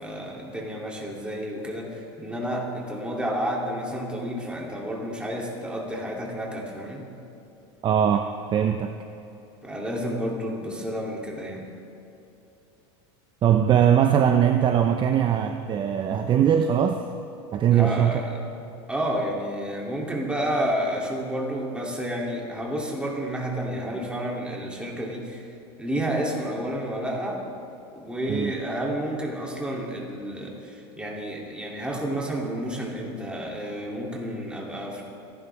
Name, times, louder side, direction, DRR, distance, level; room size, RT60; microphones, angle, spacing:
voice 1, 0.0-7.0 9.6-11.7 17.7-18.4 18.9-25.5 25.8-27.4 27.9-35.0, equal, 5° right, -2 dB, 3.0 m, -30 dB
voice 2, 7.8-8.9 13.4-17.0 17.5-18.2 28.3-28.5, right 9 dB, 35° right, 6 dB, 0.7 m, -21 dB
28.0 x 11.0 x 3.6 m, 2.9 s
supercardioid pair, 125°, 15 cm